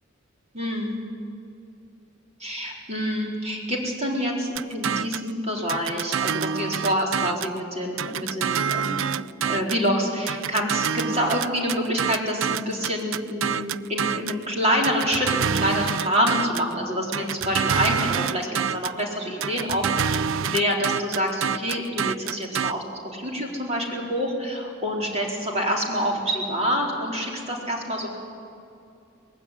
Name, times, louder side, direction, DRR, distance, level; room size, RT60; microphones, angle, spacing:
voice 1, 0.5-1.0 2.4-9.1 9.4-28.1, equal, 35° right, -1 dB, 4.2 m, -27 dB
sound 1, 4.6-5.3 5.7-7.6 8.0-9.9 10.3-14.4 14.8-16.7 17.1-19.0 19.4-22.7, right 7 dB, 70° right, 0.4 m, -27 dB
20.0 x 16.0 x 10.0 m, 2.6 s
head